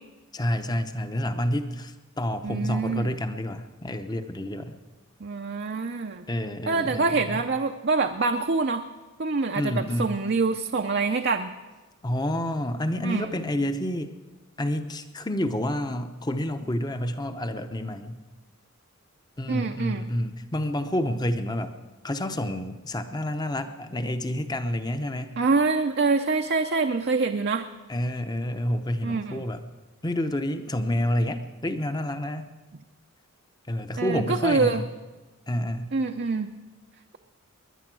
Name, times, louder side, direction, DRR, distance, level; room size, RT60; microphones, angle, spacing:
voice 1, 0.3-4.7 6.3-7.4 9.6-10.2 12.0-14.1 14.6-18.2 19.4-21.8 22.0-25.4 27.9-29.7 30.0-32.4 33.7-34.9 35.5-35.9, left 1 dB, 20° left, 9 dB, 0.8 m, -29 dB
voice 2, 2.4-3.1 5.2-6.3 6.7-8.8 9.2-11.5 13.0-13.3 19.5-20.1 25.4-27.6 29.0-29.4 34.0-34.8 35.9-36.5, right 4 dB, 45° right, 5 dB, 0.6 m, -25 dB
20.5 x 10.5 x 6.2 m, 1.2 s
head